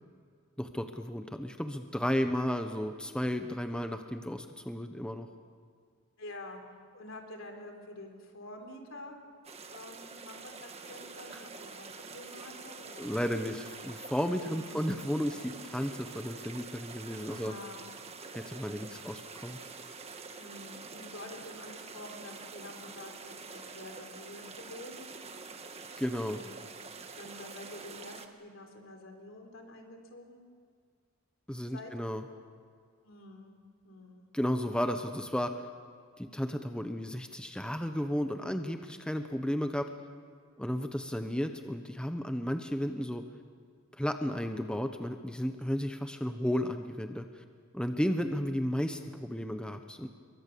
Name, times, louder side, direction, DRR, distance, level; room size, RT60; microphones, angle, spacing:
voice 1, 0.6-5.3 11.3-11.5 13.0-17.5 18.3-19.6 26.0-26.4 31.5-32.2 34.3-35.7 36.2-39.9 40.6-43.2 44.0-47.4 47.7-50.1, equal, 5° left, 6 dB, 1.0 m, -33 dB
voice 2, 6.2-6.6 6.9-9.2 9.7-13.2 14.4-14.9 17.2-17.9 18.5-19.0 20.4-25.2 26.3-26.7 27.2-30.4 31.7-31.9 33.0-33.5 33.8-34.3, left 1 dB, 65° left, 4 dB, 4.0 m, -48 dB
sound 1, 9.4-28.3, right 4 dB, 30° right, 1.6 m, -46 dB
28.0 x 23.0 x 6.9 m, 2.1 s
head